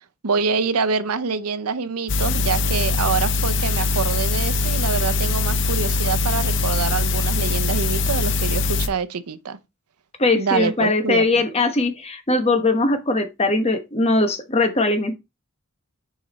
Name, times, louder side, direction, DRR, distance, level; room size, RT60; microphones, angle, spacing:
voice 1, 0.2-9.6 10.3-11.2, right 5 dB, 85° right, 0.7 m, -25 dB
sound 1, 2.1-8.9, left 3 dB, 55° left, 0.7 m, -22 dB
voice 2, 10.2-15.2, left 2 dB, 25° left, 1.1 m, -20 dB
7.1 x 4.9 x 4.2 m
head